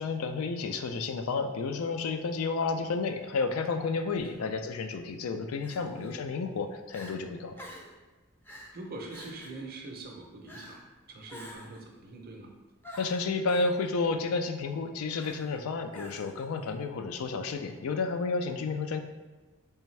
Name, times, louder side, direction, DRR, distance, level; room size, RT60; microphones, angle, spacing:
voice 1, 0.0-7.6 13.0-19.0, left 4 dB, 70° left, 7 dB, 0.3 m, -31 dB
Crying sobbing, 4.1-4.4 5.6-6.1 6.6-6.7 6.9-7.2 7.6-8.0 8.4-8.8 9.1-9.6 10.5-10.8 11.3-11.8 12.8-13.7 15.2-15.6 15.9-16.4, equal, 10° left, 0.4 m, -47 dB
voice 2, 5.8-6.3 8.5-12.5, right 2 dB, 45° right, 1 dB, 0.6 m, -44 dB
3.4 x 3.3 x 3.2 m, 1.2 s
head